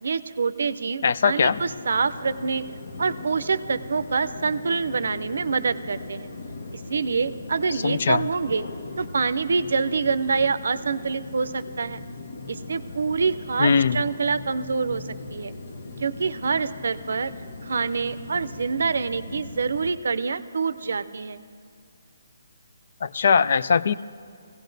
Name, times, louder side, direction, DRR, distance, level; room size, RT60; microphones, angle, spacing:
voice 1, 0.0-2.7 3.0-6.3 6.7-8.6 9.0-12.0 12.5-15.5 16.0-17.3 17.6-21.4, right 5 dB, 70° right, 15 dB, 0.5 m, -26 dB
voice 2, 1.0-1.6 7.8-8.2 13.6-14.0 23.0-23.9, left 6 dB, 55° left, 16 dB, 0.3 m, -20 dB
sound 1, 1.4-19.9, left 3 dB, 75° left, 1.1 m, -39 dB
20.5 x 16.5 x 2.6 m, 2.3 s
hypercardioid pair, 160°, 0 cm